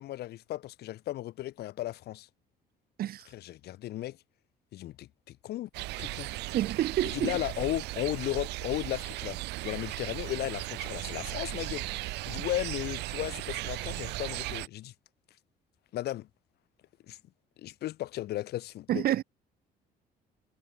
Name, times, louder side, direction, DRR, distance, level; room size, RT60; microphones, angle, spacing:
voice 1, 0.0-2.3 3.3-4.2 4.7-5.7 6.0-6.3 7.0-9.4 9.6-14.9 15.9-16.3 17.1-17.2 17.6-19.0, left 14 dB, 70° left, 3.1 m, -35 dB
sound 1, 5.7-14.7, right 20 dB, 90° right, 5.2 m, -37 dB
voice 2, 6.5-7.4 18.9-19.2, right 12 dB, 65° right, 2.1 m, -28 dB
cardioid pair, 110°, 17 cm